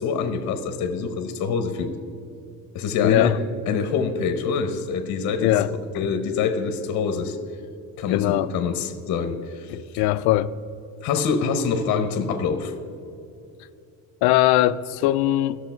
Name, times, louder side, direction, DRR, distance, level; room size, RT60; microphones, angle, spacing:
voice 1, 0.0-1.9 2.7-3.4 3.7-7.4 8.0-10.0 11.0-12.7, left 5 dB, 45° left, 8 dB, 0.9 m, -25 dB
voice 2, 3.0-3.4 5.4-5.7 8.1-8.5 9.7-10.5 14.2-15.6, left 15 dB, 70° left, 15 dB, 0.5 m, -20 dB
14.5 x 6.4 x 4.5 m, 2.7 s
cardioid pair, 165°, 40 cm